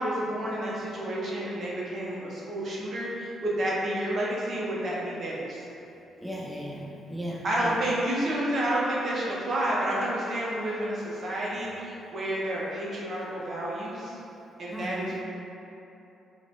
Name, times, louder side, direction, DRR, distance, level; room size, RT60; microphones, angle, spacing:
voice 1, 0.0-5.6 7.4-14.2 14.6-15.2, right 1 dB, 55° right, -6 dB, 0.8 m, -30 dB
voice 2, 6.2-7.9 14.7-15.2, equal, ahead, -4 dB, 0.3 m, -36 dB
3.1 x 2.2 x 3.9 m, 2.9 s
cardioid pair, 90°, 0 cm